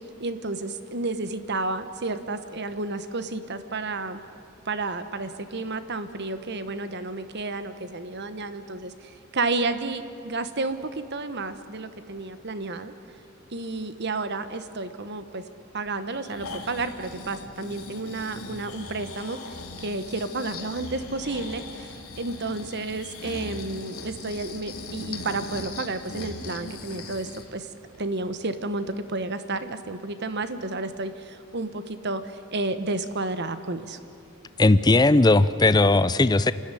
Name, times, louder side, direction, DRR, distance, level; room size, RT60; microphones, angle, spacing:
voice 1, 0.2-4.2 4.6-12.9 13.5-15.4 15.7-19.4 19.8-27.7 28.0-34.0, right 3 dB, 50° right, 11 dB, 1.2 m, -31 dB
Breathing, 16.1-27.5 27.9-28.0, left 3 dB, 80° left, 2.6 m, -39 dB
voice 2, 34.6-36.5, left 2 dB, 20° left, 15 dB, 0.5 m, -18 dB
28.0 x 13.5 x 10.0 m, 2.6 s
head